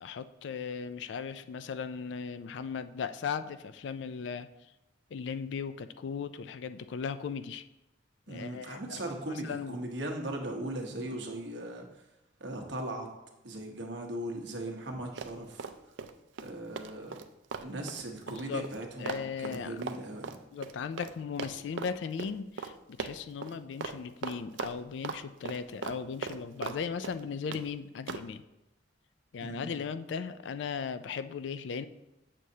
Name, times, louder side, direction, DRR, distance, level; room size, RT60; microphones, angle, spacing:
voice 1, 0.0-4.5 5.1-7.7 8.3-8.8 9.3-9.8 18.3-18.6 19.0-19.8 20.5-28.4 29.3-31.9, left 6 dB, 70° left, 12 dB, 0.3 m, -37 dB
voice 2, 8.3-12.0 12.4-13.1 13.4-15.7 16.4-17.2 17.6-20.4 29.4-29.8, right 1 dB, 65° right, 2 dB, 1.1 m, -38 dB
Run, 15.2-16.1 16.4-21.1 21.4-21.9 22.2-22.3 22.6-22.7 23.0-23.5 23.8-24.0 24.2-25.2 25.5-26.8 27.0-27.6 28.1-28.3, right 5 dB, 80° right, 0.4 m, -38 dB
7.5 x 6.5 x 2.8 m, 0.92 s
head